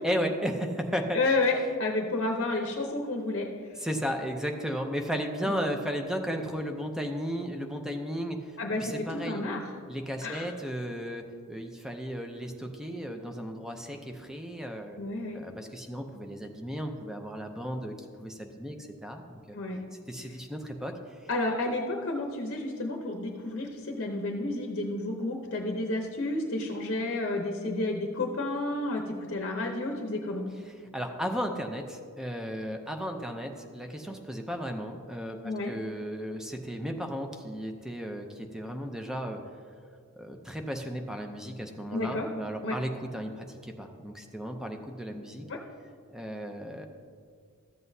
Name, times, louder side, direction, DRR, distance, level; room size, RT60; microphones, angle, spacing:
voice 1, 0.0-1.2 3.8-9.4 9.9-15.0 15.3-19.6 20.1-20.9 30.7-39.4 40.1-45.5 46.1-46.9, equal, 5° right, 4 dB, 0.5 m, -35 dB
voice 2, 1.1-3.5 5.4-5.5 8.6-9.6 10.2-10.4 15.0-15.4 19.5-19.8 21.3-30.5 35.4-35.7 41.9-42.3 42.6-42.8 45.5-45.6, left 2 dB, 55° left, 2 dB, 0.8 m, -31 dB
13.5 x 7.8 x 2.7 m, 2.1 s
head